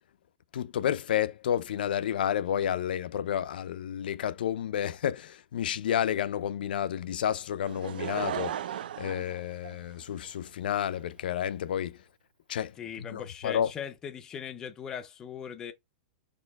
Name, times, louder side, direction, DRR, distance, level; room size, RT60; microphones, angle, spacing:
voice 1, 0.5-8.6 9.0-12.0 12.5-12.7 13.1-13.7, left 10 dB, 80° left, 0.4 m, -30 dB
Laughter / Crowd, 7.6-10.3 11.0-11.1, right 10 dB, 80° right, 0.4 m, -36 dB
voice 2, 12.8-15.7, left 7 dB, 10° left, 0.4 m, -39 dB
4.2 x 2.6 x 4.0 m
supercardioid pair, 175°, 5 cm